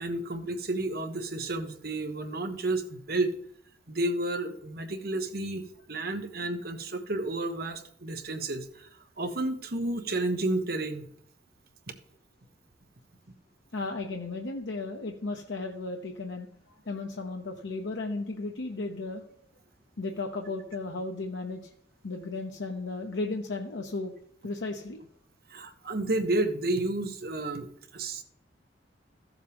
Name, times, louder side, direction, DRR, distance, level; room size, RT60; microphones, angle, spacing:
voice 1, 0.0-3.3 3.9-8.9 9.2-11.1 25.5-28.2, right 2 dB, 55° right, 7 dB, 1.1 m, -31 dB
voice 2, 13.7-16.5 16.9-19.3 20.0-21.6 22.0-24.1 24.4-25.0, left 3 dB, 85° left, 2 dB, 0.9 m, -34 dB
14.5 x 7.3 x 3.5 m, 0.68 s
head